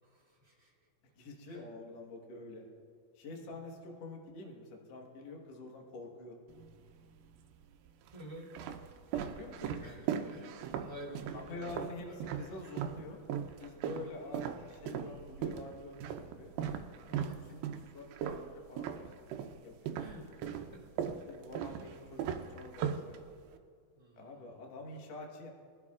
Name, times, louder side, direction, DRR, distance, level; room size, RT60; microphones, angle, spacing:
voice 1, 0.0-0.9 1.5-1.7 3.6-3.7 8.1-8.5 9.2-11.7 12.5-12.6 13.8-14.2 16.7-17.1 18.2-18.4 20.0-20.8 21.1-21.3 23.9-24.7, right 1 dB, 10° right, -4 dB, 2.4 m, -51 dB
voice 2, 1.1-2.7 3.1-6.4 9.1-10.2 11.3-13.2 13.5-16.5 17.1-17.7 17.9-20.0 20.6-20.7 21.3-23.2 24.2-25.5, left 2 dB, 55° left, 0 dB, 2.2 m, -47 dB
sound 1, 6.5-7.2 7.9-13.0 13.3-19.6 19.9-23.6, right 8 dB, 90° right, 2.6 m, -38 dB
22.0 x 12.5 x 2.4 m, 2.1 s
omnidirectional pair, 4.2 m